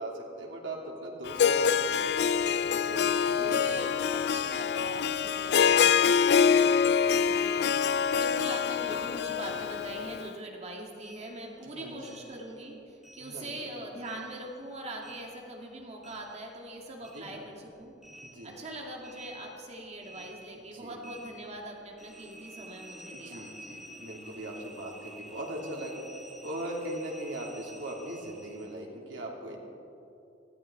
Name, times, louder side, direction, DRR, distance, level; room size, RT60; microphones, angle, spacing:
voice 1, 0.0-2.4 2.8-4.0 5.4-5.8 6.9-7.3 11.6-12.0 13.2-13.5 17.1-17.4 18.2-18.5 20.7-21.0 23.1-26.0 26.4-29.6, right 1 dB, 85° right, -2 dB, 3.1 m, -40 dB
Harp, 1.3-10.3, left 7 dB, 60° left, 0.4 m, -25 dB
voice 2, 3.4-6.9 7.2-17.9 18.4-23.5, right 1 dB, 35° right, 0 dB, 2.1 m, -42 dB
sound 1, 11.0-13.7 14.0-16.7 17.0-28.8, right 1 dB, ahead, 2.6 m, -51 dB
19.0 x 14.5 x 4.6 m, 2.7 s
head